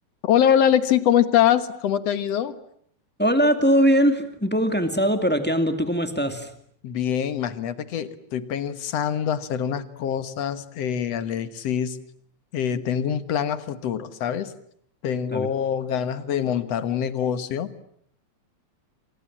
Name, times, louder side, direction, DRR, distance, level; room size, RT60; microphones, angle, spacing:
voice 1, 0.2-2.5 6.8-12.0 12.5-14.5 15.0-17.7, left 9 dB, 65° left, 12 dB, 2.3 m, -24 dB
voice 2, 3.2-6.5 15.3-15.5, equal, 5° left, 7 dB, 1.9 m, -21 dB
28.5 x 26.0 x 7.5 m, 0.67 s
omnidirectional pair, 3.3 m